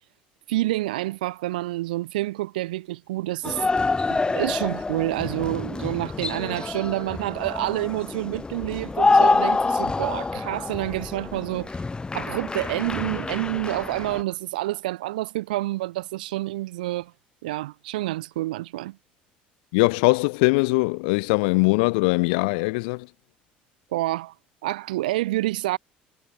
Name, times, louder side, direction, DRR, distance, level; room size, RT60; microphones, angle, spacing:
voice 1, 0.5-3.6 4.3-11.8 12.1-17.1 17.4-19.0 23.9-24.3 24.6-25.8, right 17 dB, 70° right, 3.0 m, -28 dB
sound 1, 3.4-14.2, left 3 dB, 20° left, 4.9 m, -26 dB
voice 2, 19.7-23.1, left 29 dB, 65° left, 4.5 m, -21 dB
figure-of-eight pair, 60°, 5 cm